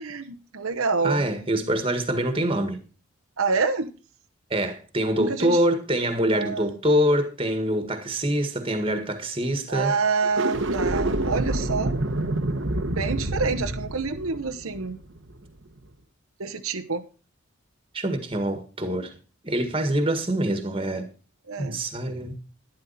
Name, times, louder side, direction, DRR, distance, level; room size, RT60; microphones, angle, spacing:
voice 1, 0.0-1.2 3.4-3.9 5.1-5.6 6.3-6.7 9.7-12.0 13.0-15.0 16.4-17.0 21.5-21.8, right 4 dB, 90° right, 1.0 m, -27 dB
voice 2, 1.0-2.8 4.5-10.0 17.9-19.1 19.4-21.1 21.6-22.3, right 1 dB, 25° right, 1.8 m, -25 dB
sound 1, 10.2-15.5, right 2 dB, 65° right, 1.1 m, -27 dB
11.5 x 11.0 x 4.2 m
head